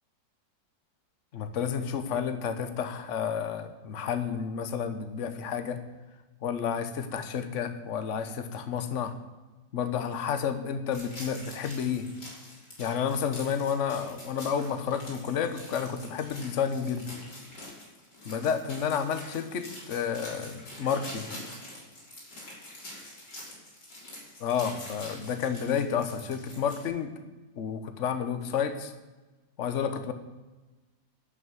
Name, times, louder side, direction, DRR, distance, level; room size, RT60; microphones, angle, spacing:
voice 1, 1.3-5.8 6.4-9.1 9.7-12.1 12.8-17.1 18.2-21.3 24.4-27.1 27.6-28.9 29.6-30.1, left 7 dB, 50° left, 9 dB, 1.2 m, -30 dB
sound 1, 10.9-26.8, left 1 dB, 65° left, 4.7 m, -45 dB
12.0 x 6.1 x 9.3 m, 1.2 s
omnidirectional pair, 1.9 m